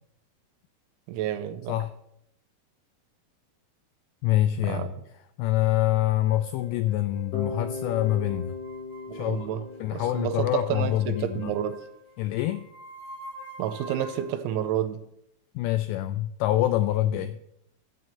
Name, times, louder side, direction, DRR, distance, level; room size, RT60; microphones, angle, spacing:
voice 1, 1.1-1.8 4.6-4.9 9.1-9.6 9.9-11.8 13.6-15.0, right 11 dB, 85° right, 3.0 m, -30 dB
voice 2, 4.2-4.9 5.4-8.5 9.1-11.5 12.2-12.6 15.6-17.4, left 14 dB, 85° left, 2.5 m, -26 dB
sound 1, 6.2-14.4, equal, 25° left, 1.1 m, -46 dB
Bass guitar, 7.3-11.3, left 4 dB, 40° left, 1.9 m, -38 dB
7.8 x 7.7 x 8.2 m
omnidirectional pair, 5.5 m